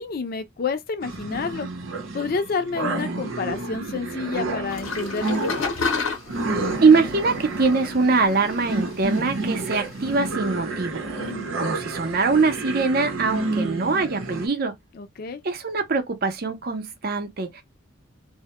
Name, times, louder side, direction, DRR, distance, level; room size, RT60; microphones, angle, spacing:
voice 1, 0.0-1.7 2.1-5.7 11.2-11.5 15.0-15.4, left 5 dB, 45° left, 0.4 m, -29 dB
sound 1, 1.0-14.5, right 2 dB, 90° right, 0.7 m, -30 dB
sound 2, 4.7-10.3, left 4 dB, 85° left, 0.8 m, -32 dB
voice 2, 6.8-11.0 11.6-14.8 15.4-17.6, right 4 dB, 50° right, 0.6 m, -22 dB
2.1 x 2.1 x 2.8 m
head